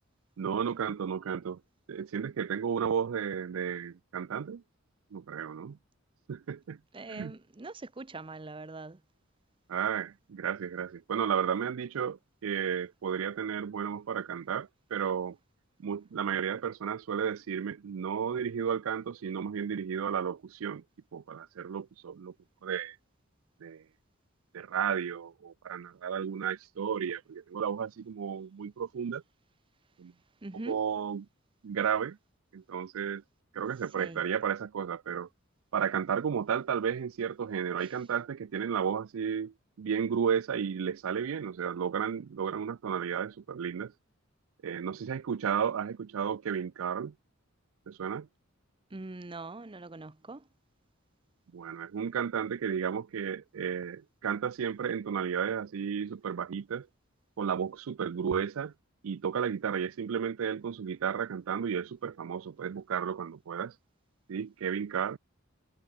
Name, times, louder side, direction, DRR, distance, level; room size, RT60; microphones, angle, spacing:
voice 1, 0.4-1.6 1.9-4.6 5.1-5.8 6.3-6.8 7.1-7.3 9.7-15.4 15.8-20.8 21.1-22.3 22.6-23.0 23.6-23.8 24.5-29.2 30.0-30.1 30.7-31.3 31.6-32.2 32.5-33.2 33.5-35.3 35.7-43.9 44.6-47.1 47.9-48.3 51.5-56.9 57.4-58.7 59.0-63.7 64.3-65.2, right 7 dB, 85° right, 0.4 m, -33 dB
voice 2, 6.9-9.0 30.4-30.8 34.0-34.2 48.9-50.4, right 2 dB, 25° right, 0.7 m, -42 dB
head